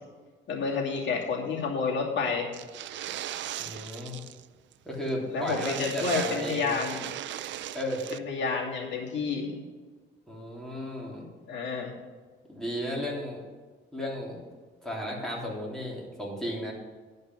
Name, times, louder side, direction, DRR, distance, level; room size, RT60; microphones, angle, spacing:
voice 1, 0.5-2.5 5.3-7.1 8.1-9.6 11.5-11.9, left 4 dB, 65° left, -2 dB, 2.6 m, -30 dB
sound 1, 2.5-4.5 4.7-4.8 5.1-5.2 5.4-8.2, right 12 dB, 70° right, 0.5 m, -38 dB
voice 2, 3.6-4.2 4.9-6.8 7.7-8.0 10.3-11.3 12.5-13.4 13.9-14.4 14.8-16.7, equal, ahead, -3 dB, 3.3 m, -34 dB
11.0 x 5.3 x 7.6 m, 1.4 s
cardioid pair, 90°, 20 cm